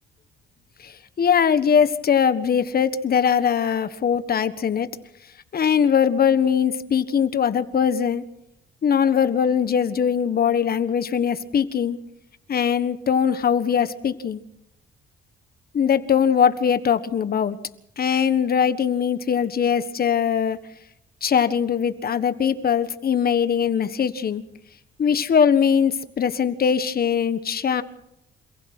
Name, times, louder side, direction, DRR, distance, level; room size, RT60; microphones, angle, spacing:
voice 1, 1.2-4.9 5.5-8.2 8.8-12.0 12.5-14.4 15.7-17.6 18.0-20.6 21.2-24.4 25.0-27.8, left 7 dB, 50° left, 12 dB, 1.4 m, -21 dB
27.5 x 16.0 x 6.1 m, 0.82 s
cardioid pair, 90°, 20 cm